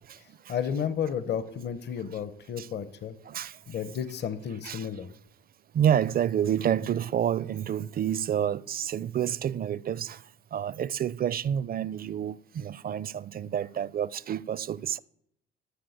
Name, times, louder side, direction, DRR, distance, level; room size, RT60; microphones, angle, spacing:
voice 1, 0.5-3.1 3.7-5.1, left 8 dB, 55° left, 1.0 m, -32 dB
voice 2, 3.3-3.6 4.6-4.9 5.7-10.2 10.5-15.0, right 9 dB, 45° right, 0.5 m, -29 dB
11.5 x 6.6 x 8.0 m
cardioid pair, 90°, 21 cm